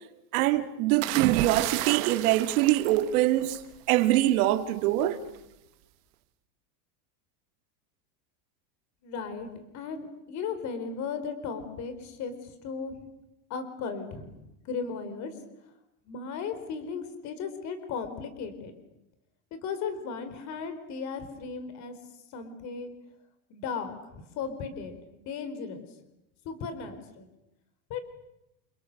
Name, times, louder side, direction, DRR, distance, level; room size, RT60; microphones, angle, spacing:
voice 1, 0.3-3.6 3.9-5.2, right 15 dB, 65° right, 2.9 m, -24 dB
sound 1, 1.0-3.8 5.0-5.3, right 16 dB, 50° right, 1.8 m, -32 dB
voice 2, 9.0-12.9 13.5-14.3 14.6-15.3 16.1-18.7 19.5-21.9 22.3-22.9 23.5-25.9 26.4-27.3 27.9-28.0, left 5 dB, 35° left, 4.5 m, -36 dB
29.5 x 28.5 x 6.9 m
cardioid pair, 175°, 47 cm